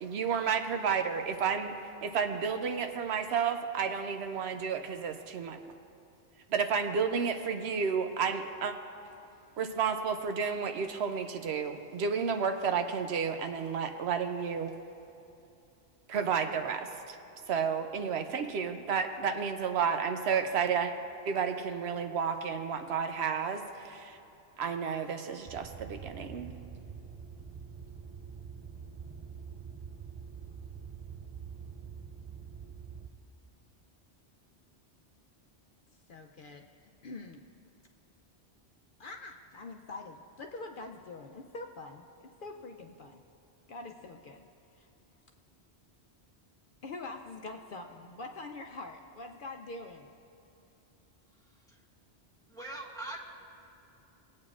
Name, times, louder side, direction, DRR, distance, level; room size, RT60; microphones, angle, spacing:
voice 1, 0.0-1.7 2.0-5.6 6.5-8.7 9.6-14.7 16.1-17.2 17.5-20.9 21.3-24.2 24.6-26.5, right 6 dB, 75° right, 7 dB, 0.9 m, -31 dB
sound 1, 25.5-33.1, right 6 dB, 40° right, 0.4 m, -45 dB
voice 2, 36.1-36.7 37.0-37.4 39.0-43.2 43.7-44.9 46.8-50.1, left 3 dB, 60° left, 2 dB, 0.7 m, -44 dB
voice 3, 51.5-51.8 52.5-53.2, right 2 dB, 5° left, -2 dB, 1.3 m, -42 dB
21.5 x 8.5 x 2.4 m, 2.8 s
omnidirectional pair, 1.1 m